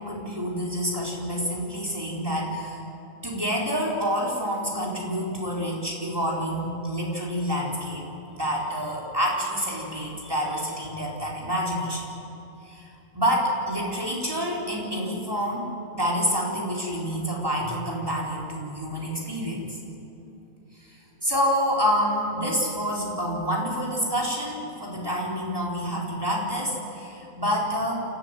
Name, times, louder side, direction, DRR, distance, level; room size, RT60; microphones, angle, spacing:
voice 1, 0.0-2.8 3.2-12.1 12.6-12.9 13.1-19.8 21.2-28.0, equal, 15° right, -3 dB, 4.0 m, -28 dB
28.5 x 13.5 x 9.1 m, 2.8 s
omnidirectional pair, 1.4 m